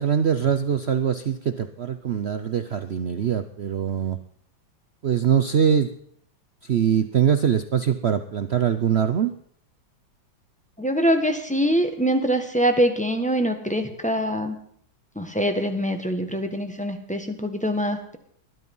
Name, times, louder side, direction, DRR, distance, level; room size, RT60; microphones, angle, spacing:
voice 1, 0.0-4.2 5.0-5.9 6.6-9.3, right 8 dB, 80° right, 10 dB, 0.5 m, -23 dB
voice 2, 10.8-14.6 15.1-18.2, equal, 5° left, 5 dB, 1.3 m, -24 dB
20.5 x 11.5 x 5.5 m, 0.64 s
omnidirectional pair, 2.2 m